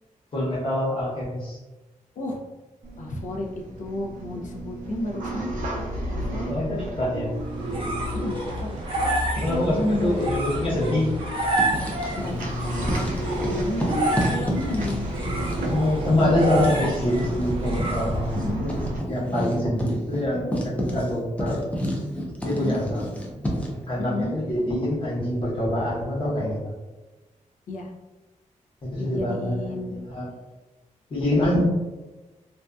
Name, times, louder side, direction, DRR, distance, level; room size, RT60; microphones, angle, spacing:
voice 1, 0.3-1.6 6.5-7.3 9.4-11.1 12.0-12.1 15.7-21.6 22.4-23.0 23.9-26.6 28.8-29.7 30.1-30.2 31.1-31.6, left 1 dB, 40° left, -6 dB, 0.8 m, -25 dB
voice 2, 2.2-2.5 3.0-3.5 3.8-5.5 6.1-6.5 8.1-8.8 9.5-10.2 12.2-13.1 13.4-15.0 18.3-18.6 22.5-22.8 24.0-24.3 27.7-27.9 29.0-29.9, left 1 dB, 75° left, 0 dB, 0.4 m, -31 dB
sound 1, 2.8-19.0, right 1 dB, 85° right, 0.5 m, -33 dB
sound 2, 7.3-18.5, right 1 dB, 40° right, 0.6 m, -30 dB
Writing, 11.4-12.5 12.8-23.8, equal, 10° left, 0.4 m, -31 dB
2.6 x 2.2 x 2.2 m, 1.1 s
wide cardioid pair, 160°, 13 cm